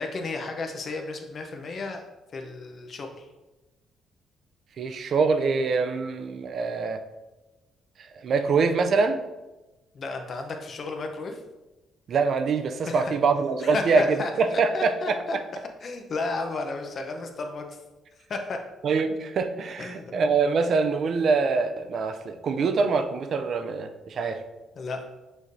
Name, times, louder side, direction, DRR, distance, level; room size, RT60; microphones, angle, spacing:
voice 1, 0.0-2.0 2.3-3.3 9.9-11.4 12.9-13.1 13.6-14.3 14.7-15.4 15.8-17.8 18.3-18.6 19.8-20.1 24.8-25.0, left 3 dB, 50° left, 4 dB, 0.7 m, -33 dB
voice 2, 4.8-7.0 8.2-9.2 12.1-15.4 18.8-24.4, right 4 dB, 60° right, 8 dB, 0.4 m, -24 dB
6.2 x 3.2 x 2.6 m, 1.1 s
cardioid pair, 90°, 0 cm